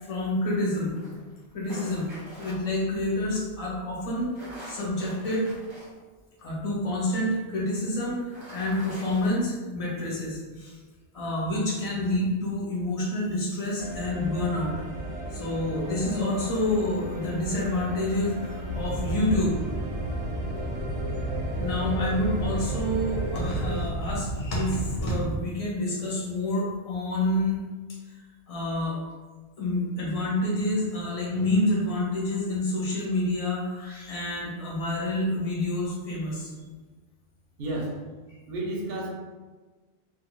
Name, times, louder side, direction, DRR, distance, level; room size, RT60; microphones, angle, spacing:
voice 1, 0.1-1.0 1.5-2.1 2.4-4.3 4.6-5.5 6.4-10.8 11.1-14.7 15.3-19.5 21.6-27.6 27.9-28.2 28.5-29.0 29.6-36.6, left 1 dB, 40° left, -5 dB, 0.7 m, -28 dB
sound 1, 1.0-2.5 4.2-5.9 6.4-6.5 8.1-9.3, equal, 30° right, 0.7 m, -44 dB
sound 2, 13.8-23.8, right 1 dB, 90° right, 1.0 m, -35 dB
sound 3, 18.7-25.3, right 1 dB, 70° left, 0.8 m, -33 dB
voice 2, 37.6-38.0 38.5-39.1, right 1 dB, 65° right, -1 dB, 0.8 m, -31 dB
2.3 x 2.3 x 3.0 m, 1.3 s
omnidirectional pair, 1.1 m